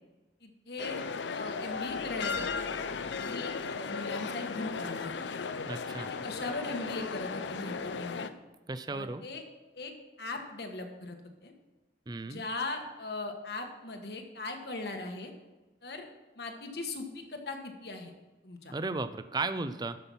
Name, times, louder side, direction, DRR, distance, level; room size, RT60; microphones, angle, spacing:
voice 1, 0.4-1.0 1.3-2.7 3.1-5.1 6.2-8.3 8.9-9.4 9.7-9.9 10.2-11.2 11.4-11.5 12.2-15.3 15.8-16.1 16.4-18.1 18.4-18.7, left 2 dB, 65° left, 4 dB, 1.4 m, -39 dB
sound 1, 0.8-8.3, left 5 dB, 85° left, 0.5 m, -36 dB
voice 2, 5.7-6.1 8.7-9.2 12.1-12.4 18.7-20.0, right 3 dB, 25° right, 11 dB, 0.4 m, -35 dB
12.5 x 5.8 x 5.6 m, 1.1 s
head